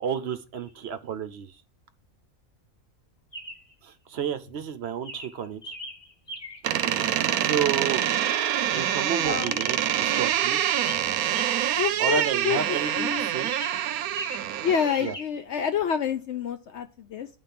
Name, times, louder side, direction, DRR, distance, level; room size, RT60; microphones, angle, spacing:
voice 1, 0.0-1.6 3.8-5.7 7.4-8.0 8.7-10.6 12.0-13.5 15.0-15.2, right 8 dB, 60° right, 0.8 m, -31 dB
Chirp tweet, 0.6-0.7 3.3-3.7 4.4-4.7 5.0-6.8 8.7-9.1 9.4-11.8 12.1-13.1 13.4-14.6 14.9-15.3, equal, 20° left, 1.0 m, -40 dB
Door, 6.6-15.1, right 11 dB, 80° right, 1.0 m, -26 dB
voice 2, 9.2-9.6 11.8-12.6 13.0-13.3 14.6-17.3, left 8 dB, 65° left, 0.7 m, -28 dB
9.2 x 3.6 x 5.7 m
omnidirectional pair, 1.5 m